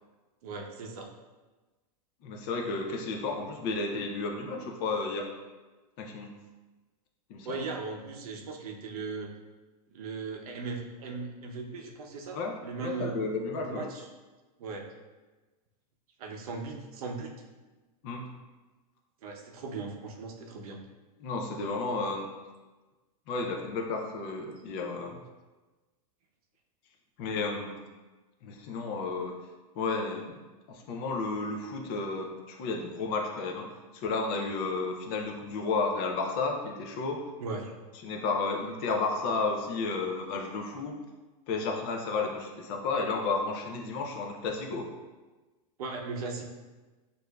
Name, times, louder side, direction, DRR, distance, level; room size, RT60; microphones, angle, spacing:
voice 1, 0.4-1.1 7.4-9.3 9.9-13.2 13.6-14.1 14.6-14.8 16.2-17.3 19.2-20.8 37.4-37.7 45.8-46.4, right 4 dB, 70° right, 2 dB, 0.7 m, -38 dB
voice 2, 2.2-5.3 6.0-6.4 7.3-7.6 12.3-12.5 12.8-13.9 18.0-18.3 21.2-22.3 23.3-25.2 27.2-27.8 28.4-29.4 29.8-30.4 30.7-37.3 38.0-41.0 41.5-44.9, left 3 dB, 30° left, 2 dB, 0.4 m, -32 dB
6.4 x 2.5 x 2.2 m, 1.2 s
supercardioid pair, 165°, 20 cm